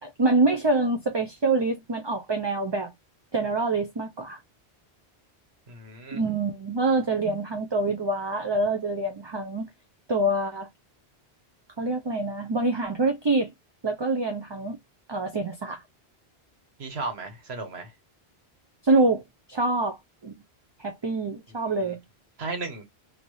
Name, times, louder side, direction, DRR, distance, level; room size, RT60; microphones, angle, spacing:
voice 1, 0.0-2.9 3.3-4.4 6.1-9.7 10.1-10.7 11.8-13.5 13.8-14.8 15.1-15.8 18.8-19.2 19.5-20.0 20.2-20.3 20.8-22.0, right 2 dB, 35° right, 0.5 m, -25 dB
voice 2, 5.7-6.2 16.8-17.9 21.8-21.9 22.4-22.8, right 3 dB, 75° right, 1.5 m, -35 dB
3.1 x 2.9 x 2.6 m
omnidirectional pair, 1.1 m